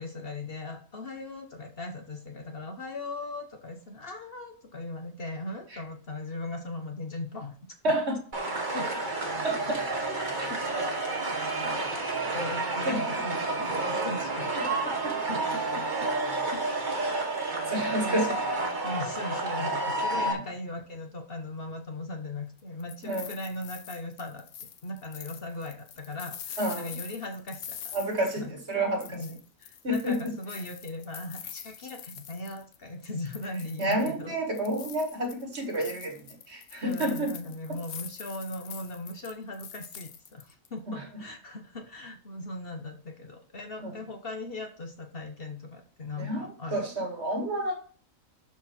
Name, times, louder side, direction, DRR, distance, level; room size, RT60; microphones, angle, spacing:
voice 1, 0.0-7.5 8.7-9.1 10.5-10.6 11.6-15.9 16.5-16.6 18.0-18.3 18.8-24.4 24.8-27.9 28.4-28.5 29.1-34.3 36.8-46.9, left 2 dB, 45° left, 4 dB, 1.2 m, -39 dB
voice 2, 7.8-8.2 9.4-9.8 10.4-10.5 12.9-13.1 17.7-18.4 20.1-20.3 23.0-23.3 26.6-26.9 27.9-29.2 29.8-30.3 33.8-37.3 40.9-41.2 43.8-43.9 46.2-47.7, right 1 dB, 50° right, 3 dB, 2.0 m, -30 dB
sound 1, 8.3-20.3, right 2 dB, 35° right, 1.6 m, -30 dB
sound 2, 22.6-28.7 29.0-32.8 33.0-34.2 34.6-40.7, left 9 dB, 65° left, 1.1 m, -44 dB
12.0 x 4.4 x 4.4 m, 0.42 s
omnidirectional pair, 1.5 m